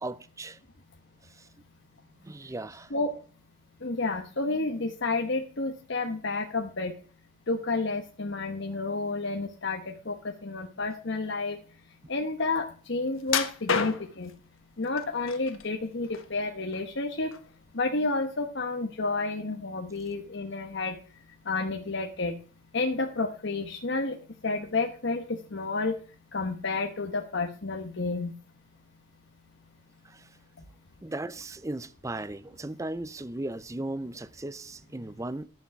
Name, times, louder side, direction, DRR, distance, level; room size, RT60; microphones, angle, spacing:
voice 1, 0.0-0.6 1.2-1.5 2.2-2.9 30.0-30.3 31.0-35.4, right 2 dB, 15° right, 0.5 m, -37 dB
voice 2, 3.8-6.9 7.5-11.6 12.1-14.3 14.8-17.3 17.7-21.0 21.4-22.4 22.7-24.2 24.4-26.0 26.3-28.3, left 3 dB, 60° left, 1.1 m, -30 dB
sound 1, 13.3-14.3 15.0-15.6 16.0-17.0 17.3-17.5 18.0-18.1, left 6 dB, 80° left, 1.3 m, -29 dB
11.5 x 7.1 x 5.8 m
head